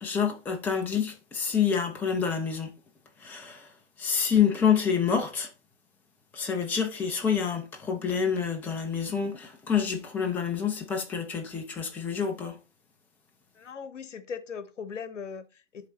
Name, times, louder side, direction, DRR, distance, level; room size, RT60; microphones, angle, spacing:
voice 1, 0.0-2.7 3.2-3.7 4.0-5.5 6.3-12.6, left 7 dB, 5° left, 0.5 m, -27 dB
voice 2, 13.5-15.9, left 6 dB, 70° left, 1.2 m, -39 dB
10.5 x 3.7 x 3.9 m
figure-of-eight pair, 125°, 38 cm